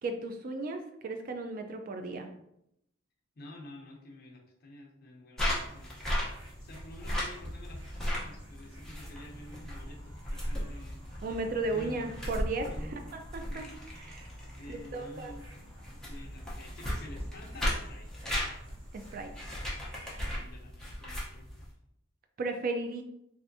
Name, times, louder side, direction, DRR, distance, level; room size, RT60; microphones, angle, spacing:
voice 1, 0.0-2.3 11.2-12.7 13.1-13.6 13.9-14.3 14.7-15.3 18.9-19.3 22.4-23.0, right 2 dB, 45° right, 5 dB, 0.4 m, -35 dB
voice 2, 3.4-5.9 6.3-11.0 11.7-12.2 12.7-13.0 13.4-13.8 14.5-15.4 15.9-18.1 20.2-21.5, left 1 dB, 50° left, 1 dB, 0.6 m, -49 dB
sound 1, 5.4-21.7, equal, 5° left, 0.7 m, -37 dB
sound 2, 5.5-20.4, equal, 75° right, 1.3 m, -51 dB
3.3 x 2.5 x 2.6 m, 0.78 s
head